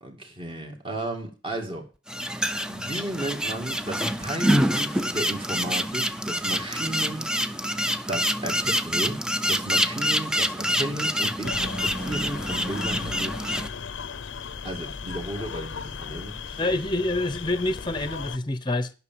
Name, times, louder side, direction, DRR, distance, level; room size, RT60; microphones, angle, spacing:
voice 1, 0.0-1.9 2.2-7.5 8.1-9.2 9.5-13.6 14.6-16.6, right 1 dB, 30° right, 2.2 m, -34 dB
sound 1, 2.1-13.7, equal, 5° right, 0.6 m, -26 dB
sound 2, 11.4-18.4, left 6 dB, 75° left, 0.7 m, -36 dB
voice 2, 16.6-18.9, left 2 dB, 25° left, 0.8 m, -27 dB
11.5 x 5.9 x 7.5 m
head